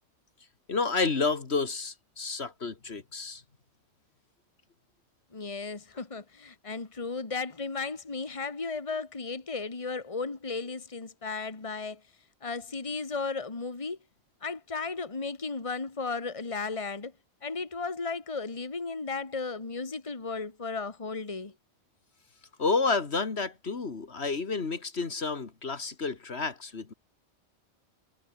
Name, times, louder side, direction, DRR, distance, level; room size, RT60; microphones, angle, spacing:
voice 1, 0.7-3.4 22.6-26.9, left 4 dB, 65° left, 2.2 m, -30 dB
voice 2, 5.3-12.0 12.4-14.0 14.4-17.1 17.4-21.5, left 4 dB, 30° left, 1.8 m, -35 dB
omnidirectional pair, 1.2 m